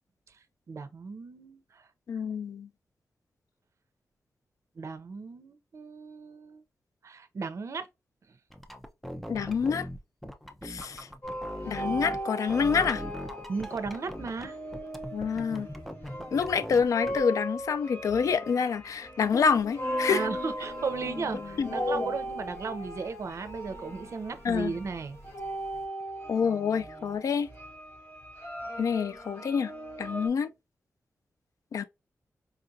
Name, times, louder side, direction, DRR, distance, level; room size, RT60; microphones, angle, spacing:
voice 1, 0.7-1.9 4.8-6.6 7.0-7.9 13.5-14.6 20.1-25.2, right 4 dB, 60° right, 0.6 m, -35 dB
voice 2, 2.1-2.7 9.3-9.9 10.6-11.1 11.6-13.0 15.1-15.7 16.3-20.3 21.6-21.7 24.4-24.7 26.3-27.5 28.8-29.7 30.0-30.5 31.7-31.8, left 6 dB, 80° left, 0.4 m, -27 dB
sound 1, 8.5-12.2 12.5-14.5 14.7-17.2, equal, ahead, 0.5 m, -41 dB
sound 2, 11.2-30.3, right 1 dB, 35° left, 2.0 m, -38 dB
sound 3, 19.3-25.8, left 3 dB, 60° left, 0.8 m, -40 dB
4.5 x 2.4 x 2.6 m
wide cardioid pair, 105°, 6 cm